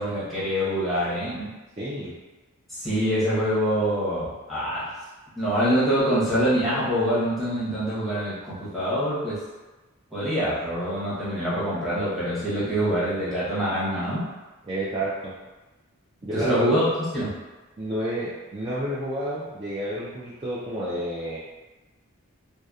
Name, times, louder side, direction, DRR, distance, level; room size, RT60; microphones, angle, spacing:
voice 1, 0.0-1.5 2.7-4.9 5.4-9.4 10.1-14.2 16.3-16.9 17.1-17.3, equal, ahead, -11 dB, 0.8 m, -25 dB
voice 2, 1.8-2.1 14.6-15.3 16.2-16.9 17.8-21.4, right 1 dB, 25° right, -9 dB, 0.3 m, -30 dB
2.7 x 2.0 x 2.3 m, 1.2 s
head